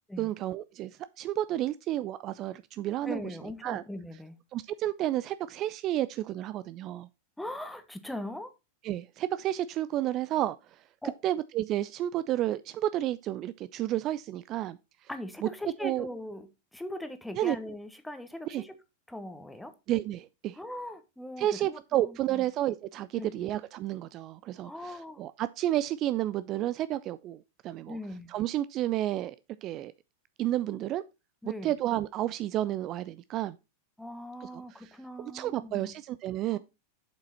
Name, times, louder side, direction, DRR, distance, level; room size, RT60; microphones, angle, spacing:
voice 1, 0.2-0.9 1.2-3.3 3.6-3.8 4.5-7.1 8.8-10.6 11.2-14.8 15.8-16.1 17.3-17.6 18.5-18.6 19.9-20.6 21.4-28.0 28.3-29.4 29.6-29.9 30.4-31.0 31.4-33.6 34.4-34.5 35.3-36.6, right 13 dB, 35° right, 0.3 m, -31 dB
voice 2, 3.0-4.4 7.4-8.5 11.0-11.1 15.1-18.8 19.1-19.7 20.5-22.5 23.1-23.5 24.6-25.2 27.9-28.3 31.4-31.7 34.0-35.9 36.5-36.6, left 1 dB, 5° left, 1.1 m, -40 dB
7.5 x 5.9 x 4.1 m
figure-of-eight pair, 90°, 0 cm